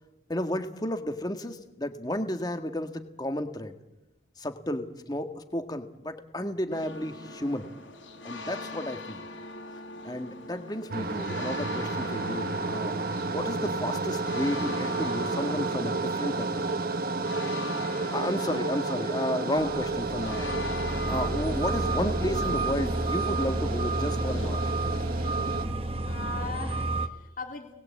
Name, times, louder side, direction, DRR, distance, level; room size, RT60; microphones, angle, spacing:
voice 1, 0.3-3.8 4.4-7.7 8.2-9.3 10.0-13.0 13.3-16.7 18.1-20.6 21.1-24.6, left 1 dB, 20° left, 7 dB, 1.6 m, -32 dB
sound 1, 6.7-24.7, left 2 dB, 80° left, 4.3 m, -41 dB
sound 2, 10.9-25.7, right 3 dB, 50° right, 1.2 m, -31 dB
voice 2, 18.4-18.9 25.2-25.4 26.1-27.7, left 4 dB, 45° left, 3 dB, 2.9 m, -40 dB
sound 3, 19.6-27.1, right 2 dB, 30° right, 1.2 m, -30 dB
29.0 x 20.0 x 8.5 m, 1.0 s
head